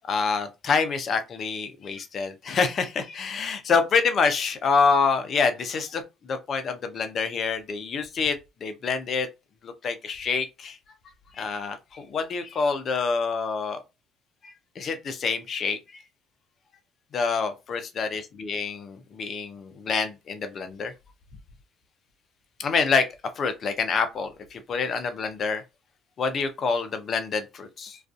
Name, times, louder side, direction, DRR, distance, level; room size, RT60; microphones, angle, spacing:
voice 1, 0.1-6.0 6.3-9.3 9.6-10.8 11.3-13.8 14.8-15.8 17.1-20.9 22.6-23.1 23.4-25.6 26.2-28.0, left 5 dB, 50° left, 0.6 m, -26 dB
2.5 x 2.4 x 2.3 m
hypercardioid pair, 60°, 0 cm